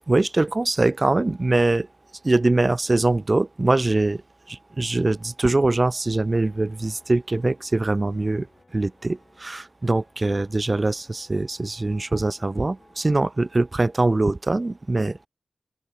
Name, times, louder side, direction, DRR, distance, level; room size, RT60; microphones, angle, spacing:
voice 1, 0.0-1.9 2.2-4.2 4.5-8.5 8.7-15.3, right 2 dB, 45° right, 0.6 m, -23 dB
Piano, 6.5-13.3, left 3 dB, 55° left, 7.8 m, -60 dB
open air
cardioid pair, 40°, 0 cm